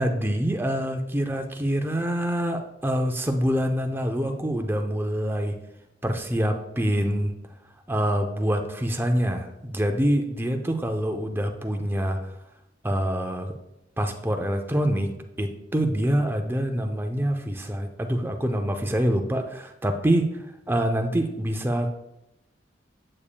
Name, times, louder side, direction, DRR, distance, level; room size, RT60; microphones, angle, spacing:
voice 1, 0.0-5.5 6.0-7.3 7.9-12.2 12.8-13.5 14.0-15.1 15.4-21.9, equal, 10° right, 5 dB, 0.6 m, -25 dB
8.6 x 6.8 x 2.2 m, 0.88 s
head